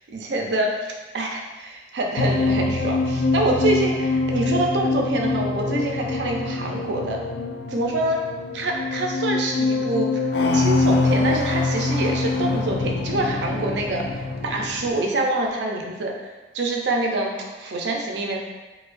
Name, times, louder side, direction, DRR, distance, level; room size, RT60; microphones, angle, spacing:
voice 1, 0.1-7.2 7.7-8.2 8.5-10.3 10.5-16.1 16.5-18.4, right 2 dB, 75° right, 0 dB, 0.5 m, -26 dB
sound 1, 2.2-14.9, left 3 dB, 65° left, 0.3 m, -24 dB
4.4 x 2.3 x 2.5 m, 1.2 s
head